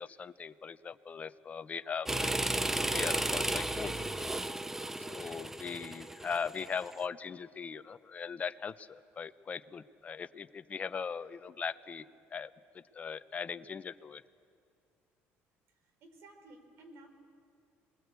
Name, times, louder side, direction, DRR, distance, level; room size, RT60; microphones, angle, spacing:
voice 1, 0.0-4.0 5.1-14.2, left 6 dB, 30° left, 12 dB, 0.7 m, -40 dB
sound 1, 2.1-6.9, right 1 dB, 10° right, 0.6 m, -34 dB
voice 2, 15.7-17.1, right 2 dB, 65° right, 6 dB, 4.4 m, -55 dB
26.0 x 21.0 x 8.3 m, 2.3 s
cardioid pair, 110°, 5 cm